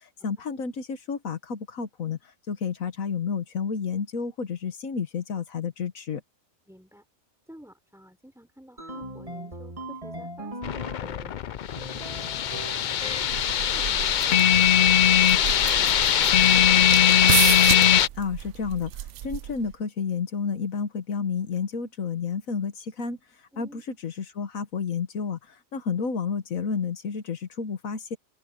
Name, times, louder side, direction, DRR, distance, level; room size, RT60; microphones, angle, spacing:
voice 1, 0.2-2.2 2.5-6.2 18.2-18.9 19.2-23.2 23.6-25.4 25.7-28.2, left 6 dB, 75° left, 1.6 m, -30 dB
voice 2, 6.7-7.1 7.5-11.5 11.9-12.4 12.7-13.2 13.7-16.8 23.5-23.8, equal, ahead, 4.2 m, -51 dB
sound 1, 8.8-11.4 11.8-13.6, right 1 dB, 25° right, 2.8 m, -39 dB
sound 2, 10.6-18.1, left 10 dB, 90° left, 0.4 m, -20 dB
sound 3, 13.1-19.8, right 13 dB, 65° right, 0.8 m, -32 dB
open air
omnidirectional pair, 1.4 m